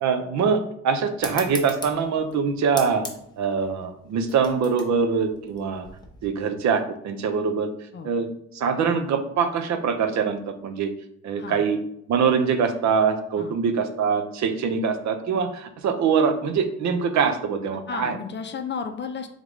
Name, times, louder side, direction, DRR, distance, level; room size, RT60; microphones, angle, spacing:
voice 1, 0.0-3.1 3.4-5.9 6.2-7.7 8.0-8.3 8.5-10.9 11.2-11.8 12.1-18.2, right 6 dB, 70° right, 7 dB, 0.6 m, -23 dB
sound 1, 1.2-6.3, left 2 dB, 15° left, 0.8 m, -39 dB
voice 2, 17.9-19.3, left 6 dB, 35° left, 7 dB, 0.5 m, -33 dB
3.6 x 3.6 x 3.1 m, 0.71 s
cardioid pair, 90°, 30 cm